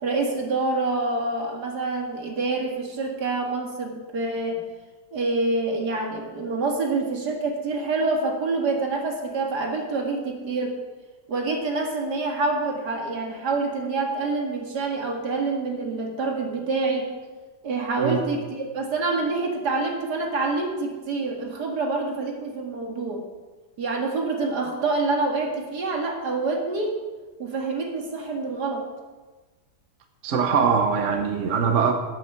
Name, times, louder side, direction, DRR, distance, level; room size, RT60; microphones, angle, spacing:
voice 1, 0.0-4.6 5.1-10.8 11.3-17.1 17.6-23.2 23.8-27.0 27.4-28.9, right 3 dB, 75° right, 1 dB, 2.4 m, -26 dB
voice 2, 30.2-31.9, right 6 dB, 50° right, 5 dB, 1.2 m, -22 dB
13.5 x 8.3 x 5.9 m, 1.3 s
omnidirectional pair, 1.8 m